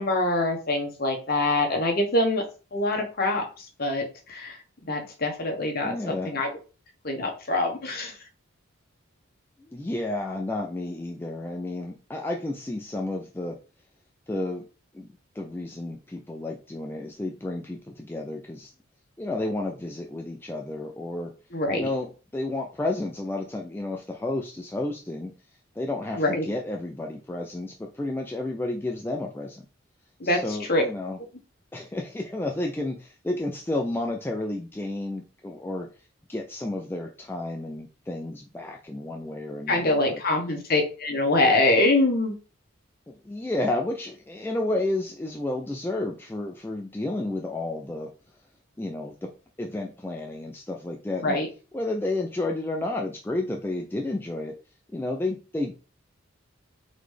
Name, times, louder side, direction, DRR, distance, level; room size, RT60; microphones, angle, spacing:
voice 1, 0.0-2.4 2.7-4.0 4.3-4.6 4.9-6.5 7.0-8.2 21.5-21.9 26.2-26.5 30.2-30.4 30.7-30.8 39.7-42.3 51.2-51.5, left 2 dB, 45° left, 2 dB, 1.0 m, -24 dB
voice 2, 5.8-6.3 9.6-13.6 14.3-14.7 14.9-18.7 19.2-21.3 21.7-25.3 25.7-29.6 30.2-31.2 31.7-35.9 36.3-40.2 43.1-48.1 48.8-49.3 49.6-51.4 51.7-54.6 54.9-55.7, left 2 dB, 10° left, 1 dB, 0.3 m, -31 dB
4.0 x 3.1 x 3.3 m, 0.34 s
head